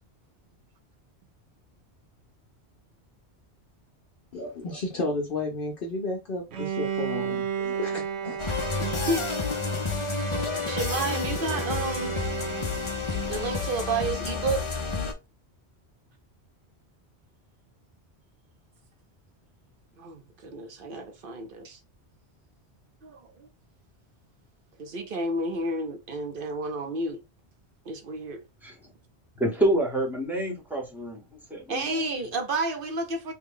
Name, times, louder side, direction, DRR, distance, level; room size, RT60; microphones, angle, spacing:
voice 1, 4.3-8.4, left 2 dB, 60° left, 0.8 m, -32 dB
Bowed string instrument, 6.5-13.2, right 8 dB, 80° right, 1.0 m, -34 dB
sound 1, 8.4-15.1, left 4 dB, 35° left, 0.5 m, -30 dB
voice 2, 8.8-9.3 10.6-12.1 13.1-14.6 20.0-21.8 23.0-23.5 24.8-27.2 27.9-28.4 31.7-33.3, right 2 dB, 55° right, 0.8 m, -31 dB
voice 3, 29.4-31.2 31.5-32.2, right 1 dB, ahead, 1.0 m, -27 dB
3.3 x 2.2 x 3.5 m
omnidirectional pair, 1.1 m